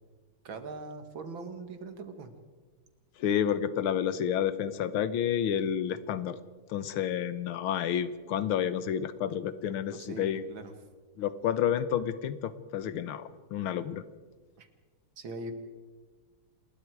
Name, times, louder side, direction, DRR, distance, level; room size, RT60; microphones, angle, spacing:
voice 1, 0.4-2.3 9.7-10.7 14.6-14.7 15.2-15.5, right 3 dB, 65° right, 8 dB, 2.5 m, -41 dB
voice 2, 3.2-6.4 6.7-10.4 11.2-14.0, left 9 dB, 75° left, 14 dB, 1.8 m, -30 dB
28.0 x 21.0 x 4.8 m, 1.4 s
omnidirectional pair, 2.3 m